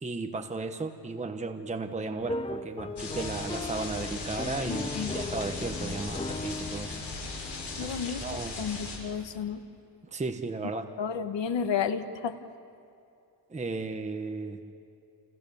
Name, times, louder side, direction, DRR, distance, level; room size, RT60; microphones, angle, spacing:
voice 1, 0.0-7.0 7.8-7.9 8.2-8.5 10.1-10.8 13.5-14.6, right 3 dB, 15° right, 5 dB, 1.1 m, -35 dB
sound 1, 2.2-8.1, left 2 dB, 15° left, 0.5 m, -37 dB
sound 2, 3.0-9.0, left 3 dB, 65° left, 6.8 m, -38 dB
voice 2, 4.7-5.2 7.8-9.7 10.6-12.4, left 7 dB, 80° left, 8 dB, 1.6 m, -32 dB
29.0 x 28.0 x 7.1 m, 2.6 s
wide cardioid pair, 150°, 43 cm